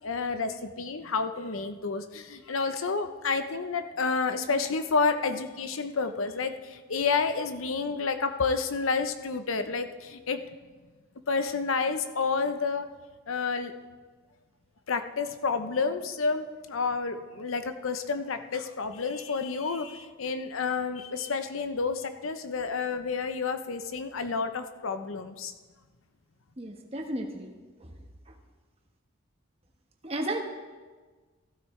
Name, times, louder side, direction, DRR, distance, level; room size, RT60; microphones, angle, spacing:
voice 1, 0.0-10.4 11.3-12.9 13.3-13.7 14.9-25.5, left 4 dB, 85° left, 9 dB, 0.8 m, -30 dB
voice 2, 26.6-27.5 30.0-30.4, right 1 dB, 30° right, 2 dB, 1.3 m, -33 dB
14.5 x 12.5 x 3.3 m, 1.4 s
head